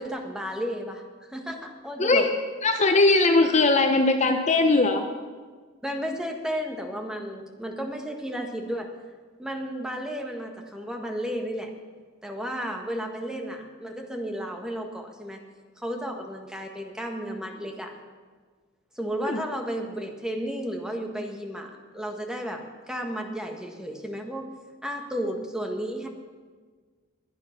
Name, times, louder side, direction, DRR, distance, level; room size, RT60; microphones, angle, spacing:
voice 1, 0.0-2.3 5.8-8.9 9.4-11.7 12.2-15.4 15.8-17.9 18.9-24.5 24.8-26.1, equal, 5° right, 3 dB, 1.5 m, -33 dB
voice 2, 2.6-5.1 19.3-19.4, left 3 dB, 35° left, 6 dB, 0.9 m, -20 dB
22.0 x 9.4 x 5.9 m, 1.5 s
head